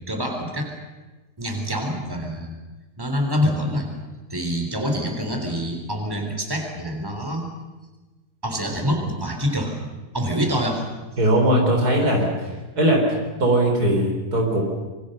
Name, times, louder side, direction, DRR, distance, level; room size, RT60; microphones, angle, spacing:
voice 1, 0.1-0.7 1.4-2.5 3.0-3.9 4.3-7.5 8.4-9.7 10.1-10.8, equal, 15° right, 3 dB, 3.7 m, -26 dB
voice 2, 11.2-13.1 13.4-14.6, right 1 dB, 70° right, 1 dB, 4.7 m, -20 dB
27.0 x 23.5 x 6.7 m, 1.2 s
omnidirectional pair, 1.7 m